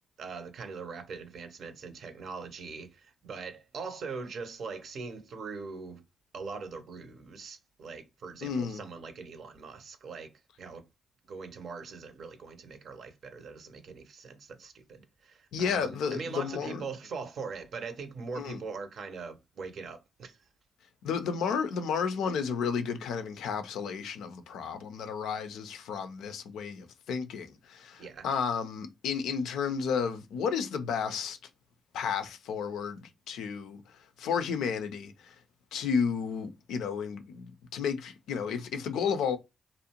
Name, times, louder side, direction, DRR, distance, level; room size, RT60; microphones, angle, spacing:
voice 1, 0.2-6.0 6.3-10.3 10.6-10.8 11.3-20.4 28.0-28.3, right 4 dB, 65° right, 0.6 m, -41 dB
voice 2, 8.4-8.8 15.5-16.8 18.4-18.6 21.0-31.4 31.9-35.4 35.7-39.4, left 6 dB, 75° left, 0.4 m, -32 dB
2.6 x 2.0 x 2.8 m
hypercardioid pair, 40°, 0 cm